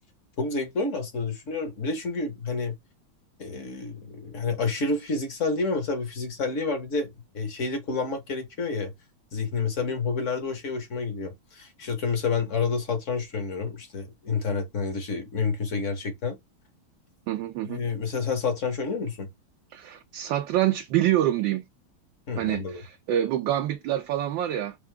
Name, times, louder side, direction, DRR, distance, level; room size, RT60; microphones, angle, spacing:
voice 1, 0.4-2.8 3.4-8.9 9.3-16.4 17.6-19.3 22.3-22.8, left 4 dB, 45° left, 1.2 m, -29 dB
voice 2, 17.3-17.8 19.7-21.6 22.4-24.8, right 12 dB, 75° right, 1.3 m, -26 dB
4.8 x 2.3 x 3.3 m
omnidirectional pair, 2.2 m